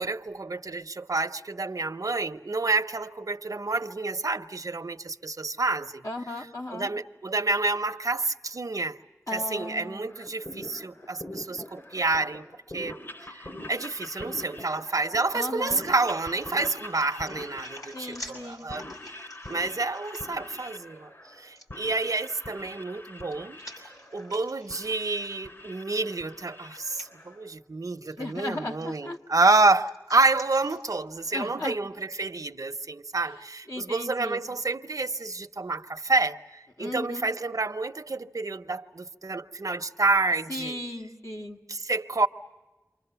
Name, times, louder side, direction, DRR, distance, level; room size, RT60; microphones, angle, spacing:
voice 1, 0.0-6.0 6.7-9.0 9.3-12.5 12.7-13.0 13.3-18.8 19.5-21.1 21.4-40.8 41.7-42.3, right 3 dB, 80° right, 0.8 m, -28 dB
voice 2, 6.0-6.9 9.3-10.1 15.3-15.8 17.9-18.7 28.2-29.2 31.3-31.8 33.7-34.4 36.8-37.3 40.5-41.6, left 1 dB, 70° left, 1.9 m, -36 dB
sound 1, 10.1-27.5, left 1 dB, 45° left, 3.4 m, -43 dB
sound 2, 15.3-20.7 21.6-21.7 22.9-25.9 26.2-26.4 26.9-27.1 28.1-28.4 28.8-31.0, equal, 90° left, 5.1 m, -49 dB
29.0 x 25.0 x 6.9 m
wide cardioid pair, 50°, 6 cm